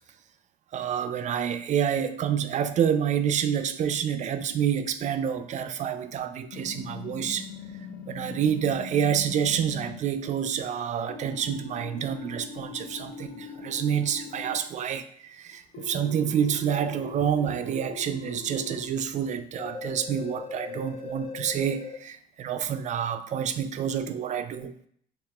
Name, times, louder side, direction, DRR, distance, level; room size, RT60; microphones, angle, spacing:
voice 1, 0.7-7.5 8.1-24.7, right 8 dB, 45° right, 0.4 m, -28 dB
sound 1, 6.5-10.0 11.1-14.6 15.7-18.9 19.6-22.0, left 5 dB, 60° left, 0.5 m, -41 dB
4.7 x 3.0 x 2.3 m
cardioid pair, 110°, 17 cm